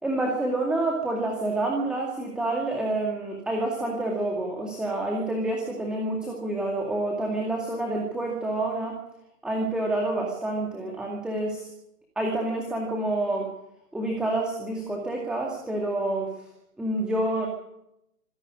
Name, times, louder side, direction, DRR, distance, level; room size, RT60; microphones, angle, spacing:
voice 1, 0.0-9.0 9.4-11.7 12.2-13.5 13.9-16.3 16.8-17.5, right 2 dB, ahead, 0 dB, 2.2 m, -28 dB
26.0 x 11.5 x 9.9 m, 0.86 s
figure-of-eight pair, 135°, 46 cm